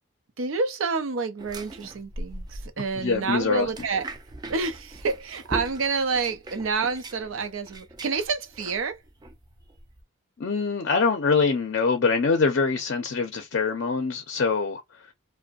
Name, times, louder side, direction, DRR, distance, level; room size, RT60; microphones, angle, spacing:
voice 1, 0.4-4.0 4.5-9.0, right 4 dB, 85° right, 0.5 m, -28 dB
sound 1, 1.4-10.0, right 1 dB, 20° right, 0.3 m, -41 dB
voice 2, 3.0-3.7 10.4-15.1, left 4 dB, 60° left, 0.5 m, -24 dB
2.5 x 2.1 x 2.3 m
head